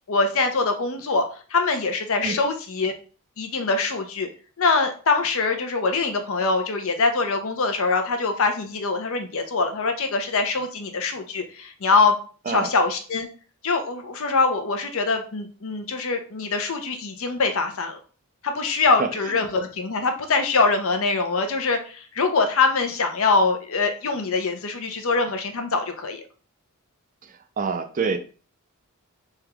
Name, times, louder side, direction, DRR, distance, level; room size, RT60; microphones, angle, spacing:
voice 1, 0.1-1.2 1.5-2.9 3.4-4.3 4.6-12.2 12.5-13.3 13.6-18.0 18.4-26.2, left 4 dB, 65° left, 6 dB, 0.7 m, -23 dB
voice 2, 27.6-28.2, right 5 dB, 35° right, 9 dB, 0.4 m, -25 dB
3.5 x 3.0 x 3.3 m, 0.38 s
head